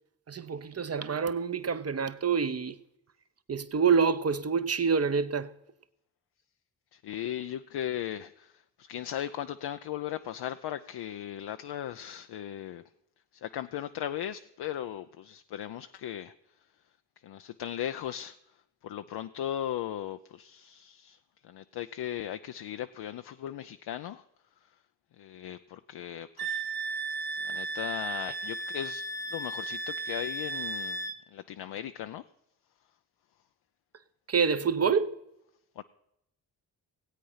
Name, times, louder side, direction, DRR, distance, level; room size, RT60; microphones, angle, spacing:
voice 1, 0.3-2.8 3.5-5.5 34.3-35.2, right 6 dB, 35° right, 0.9 m, -27 dB
voice 2, 6.9-12.8 13.3-16.3 17.2-18.4 18.8-24.2 25.2-26.6 27.4-29.1 29.3-32.2 35.8-35.9, left 11 dB, 70° left, 0.6 m, -37 dB
Wind instrument woodwind instrument, 26.4-31.2, right 3 dB, 60° right, 1.1 m, -35 dB
16.5 x 8.5 x 5.6 m
supercardioid pair, 50°, 41 cm